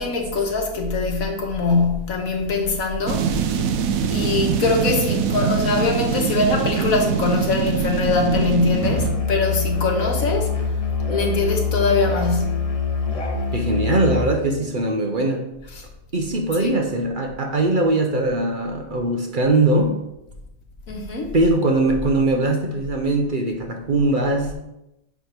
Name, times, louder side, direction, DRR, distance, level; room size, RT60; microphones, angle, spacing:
voice 1, 0.0-3.6 4.1-10.5 11.1-12.7 16.6-16.7 20.9-21.3, left 3 dB, 85° left, 1.6 m, -22 dB
sound 1, 3.1-9.1, right 7 dB, 85° right, 1.1 m, -23 dB
Musical instrument, 8.8-14.4, left 4 dB, 35° left, 0.7 m, -24 dB
voice 2, 13.5-15.5 16.1-20.0 21.3-24.5, right 2 dB, 45° right, 0.7 m, -21 dB
5.1 x 4.7 x 5.8 m
omnidirectional pair, 1.4 m